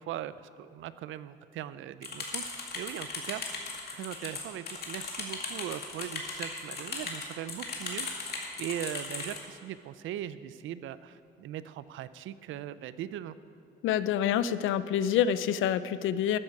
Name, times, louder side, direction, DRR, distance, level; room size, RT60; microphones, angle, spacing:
voice 1, 0.0-3.7 3.9-8.3 8.6-13.4, right 11 dB, 80° right, 15 dB, 0.5 m, -40 dB
sound 1, 2.0-9.4, left 4 dB, 50° left, 2.1 m, -37 dB
voice 2, 13.8-16.4, left 9 dB, 80° left, 15 dB, 0.5 m, -27 dB
13.0 x 9.8 x 4.8 m, 2.6 s
cardioid pair, 90°, 20 cm